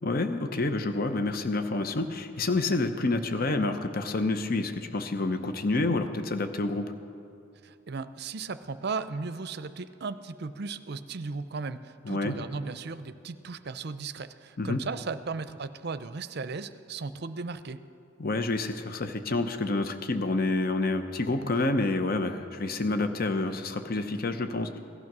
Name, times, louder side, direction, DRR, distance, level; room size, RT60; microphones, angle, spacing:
voice 1, 0.0-6.9 12.0-12.4 14.6-14.8 18.2-24.8, left 2 dB, 50° left, 8 dB, 0.8 m, -28 dB
voice 2, 7.6-17.8, right 4 dB, 55° right, 13 dB, 0.5 m, -36 dB
17.0 x 12.0 x 6.1 m, 2.5 s
head